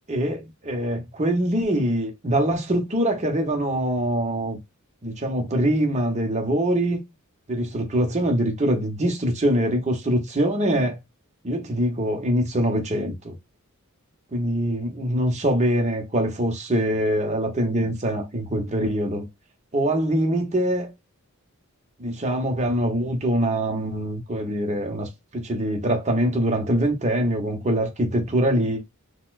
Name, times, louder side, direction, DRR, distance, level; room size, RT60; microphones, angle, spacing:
voice 1, 0.1-4.6 5.0-7.0 7.5-11.0 11.4-13.4 14.3-19.3 19.7-20.9 22.0-28.8, right 1 dB, 30° right, 0.9 m, -23 dB
4.1 x 2.2 x 2.4 m
head